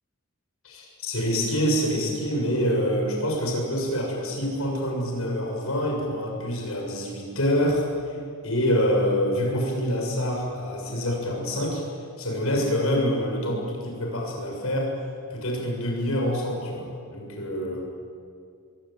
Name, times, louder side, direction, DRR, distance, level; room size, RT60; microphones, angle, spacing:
voice 1, 0.6-7.8 8.4-11.8 12.2-14.9 15.3-17.8, equal, 70° left, 0 dB, 7.2 m, -26 dB
24.5 x 23.0 x 9.4 m, 2.3 s
head